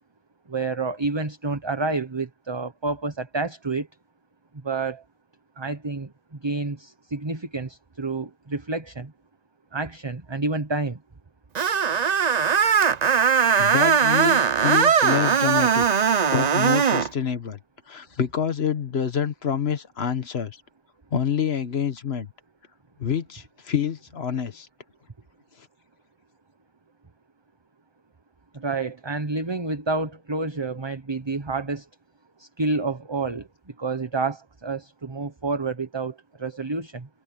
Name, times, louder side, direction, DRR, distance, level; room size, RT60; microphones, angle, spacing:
voice 1, 0.5-3.9 4.6-5.0 5.6-6.1 6.4-9.1 9.7-11.0 28.5-31.8 32.4-33.5 33.8-37.1, right 3 dB, 25° right, 1.1 m, -29 dB
Screech, 11.6-17.1, right 7 dB, 45° right, 0.7 m, -20 dB
voice 2, 13.6-15.9 16.3-17.6 17.9-20.6 21.1-22.3 23.0-24.7, left 8 dB, 75° left, 1.5 m, -27 dB
omnidirectional pair, 1.1 m